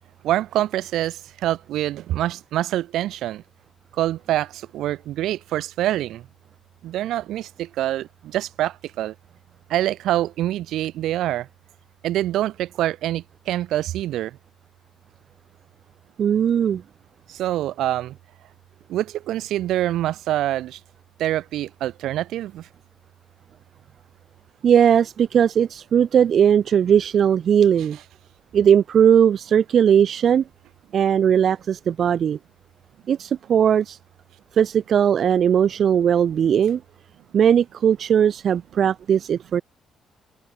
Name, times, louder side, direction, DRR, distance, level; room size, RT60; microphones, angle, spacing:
voice 1, 0.2-3.4 3.9-6.3 6.8-9.1 9.7-11.5 12.0-14.4 17.3-18.2 18.9-20.8 21.2-22.7, right 13 dB, 85° right, 1.9 m, -25 dB
voice 2, 16.2-16.8 24.6-28.0 28.5-30.4 30.9-32.4 33.1-34.0 34.5-36.8 37.3-39.6, right 8 dB, 60° right, 0.4 m, -18 dB
cardioid pair, 90°, 0 cm